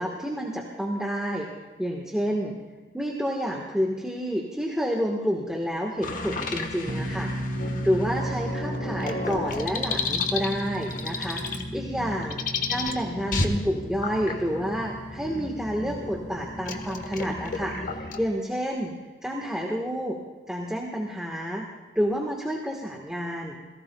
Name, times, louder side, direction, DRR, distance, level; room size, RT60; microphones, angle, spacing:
voice 1, 0.0-1.5 1.8-2.5 2.9-7.3 7.8-11.4 11.7-12.4 12.7-18.9 19.2-20.2 20.5-21.7 21.9-23.6, equal, 5° right, -1 dB, 1.4 m, -29 dB
sound 1, 6.0-18.3, left 3 dB, 45° left, 1.3 m, -32 dB
sound 2, 6.8-17.4, right 1 dB, 45° right, 1.5 m, -37 dB
29.5 x 17.5 x 2.3 m, 1.4 s
head